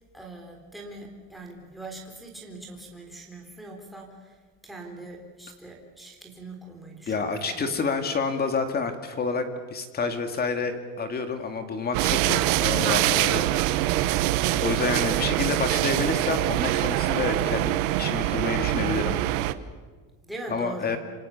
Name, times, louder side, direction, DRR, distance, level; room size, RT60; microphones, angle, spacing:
voice 1, 0.1-4.4 4.6-7.8 20.2-21.0, right 2 dB, ahead, -1 dB, 3.7 m, -42 dB
voice 2, 7.1-13.5 13.8-14.1 14.6-19.2 20.5-21.0, left 4 dB, 20° left, 7 dB, 2.3 m, -29 dB
sound 1, 11.9-19.5, right 15 dB, 80° right, 1.3 m, -24 dB
28.0 x 26.5 x 7.2 m, 1.5 s
cardioid pair, 170°, 42 cm